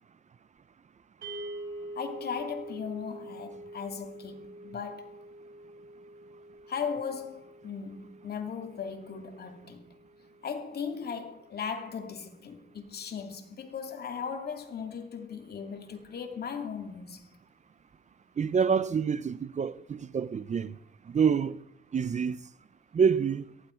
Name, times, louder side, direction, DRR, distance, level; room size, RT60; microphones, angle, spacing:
sound 1, 1.2-11.5, right 1 dB, 55° right, 5.9 m, -46 dB
voice 1, 2.0-5.2 6.7-9.9 10.4-17.3, left 6 dB, 55° left, 2.6 m, -37 dB
voice 2, 18.4-20.8 21.1-21.6 21.9-22.4 22.9-23.4, right 6 dB, 35° right, 0.7 m, -27 dB
18.0 x 15.0 x 4.5 m
cardioid pair, 90°, 20 cm